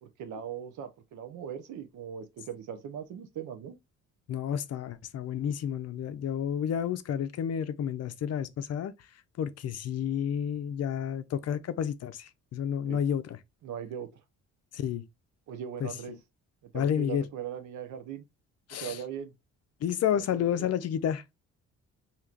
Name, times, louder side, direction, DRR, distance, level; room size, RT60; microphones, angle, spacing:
voice 1, 0.0-3.8 12.8-13.0 13.6-14.1 15.5-16.2 16.7-18.2 18.8-19.3 20.1-20.7, right 8 dB, 75° right, 0.8 m, -39 dB
voice 2, 4.3-8.9 9.4-13.4 14.7-15.0 15.8-15.9 16.7-17.2 18.7-19.0 19.8-21.3, left 9 dB, 55° left, 0.5 m, -30 dB
4.4 x 2.9 x 2.4 m
cardioid pair, 90°, 30 cm